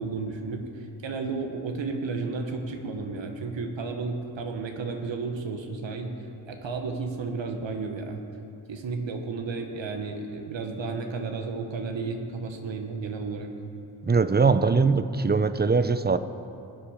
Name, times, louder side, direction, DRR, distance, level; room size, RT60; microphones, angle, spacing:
voice 1, 0.0-6.2 6.5-8.2 8.7-13.5, right 4 dB, 75° right, 4 dB, 1.2 m, -32 dB
voice 2, 14.0-16.2, right 4 dB, 20° right, 12 dB, 0.5 m, -21 dB
16.5 x 8.5 x 5.0 m, 2.8 s
cardioid pair, 55°, 45 cm